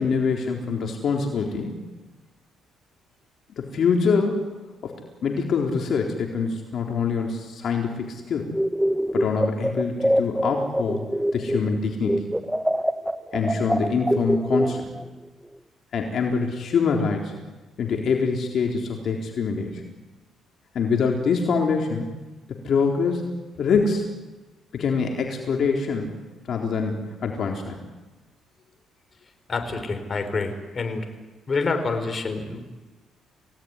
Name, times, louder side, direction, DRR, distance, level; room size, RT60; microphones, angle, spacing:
voice 1, 0.0-1.8 3.6-4.5 4.8-5.0 5.2-8.5 9.1-12.3 13.3-14.9 15.9-17.3 17.8-19.8 20.7-22.1 22.5-23.3 23.6-24.1 24.7-26.2 26.5-27.8, left 5 dB, 60° left, 1 dB, 3.9 m, -25 dB
sound 1, 8.5-11.8 12.0-15.1, equal, 5° right, 1.3 m, -24 dB
voice 2, 29.5-31.0 31.5-32.6, left 4 dB, 35° left, 7 dB, 4.8 m, -27 dB
29.0 x 18.5 x 9.8 m, 1.2 s
cardioid pair, 95°, 0 cm